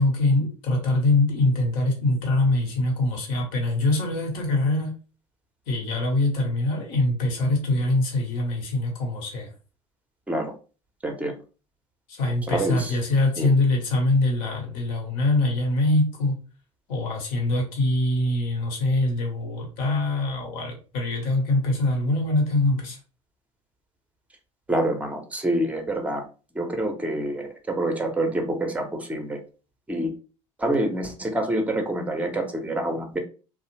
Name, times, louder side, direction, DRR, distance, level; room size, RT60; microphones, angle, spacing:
voice 1, 0.0-4.9 5.7-9.5 12.1-16.3 16.9-23.0, left 2 dB, 60° left, 1 dB, 1.2 m, -23 dB
voice 2, 12.5-13.0 13.4-13.5 24.7-26.2 26.5-29.4 29.9-30.1 30.6-33.2, right 1 dB, 10° right, 4 dB, 0.7 m, -26 dB
2.4 x 2.1 x 3.0 m, 0.35 s
hypercardioid pair, 70°, 17 cm